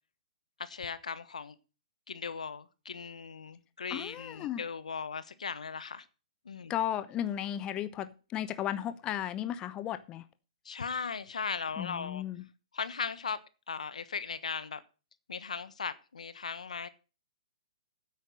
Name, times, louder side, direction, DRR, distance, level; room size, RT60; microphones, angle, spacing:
voice 1, 0.6-1.5 2.1-6.0 6.4-6.7 10.6-12.2 12.7-13.4 13.7-14.8 15.3-16.9, left 5 dB, 75° left, 1.2 m, -38 dB
voice 2, 3.9-4.6 6.7-10.2 11.8-12.4, left 11 dB, 25° left, 0.7 m, -35 dB
9.5 x 8.4 x 6.3 m
hypercardioid pair, 125°, 4 cm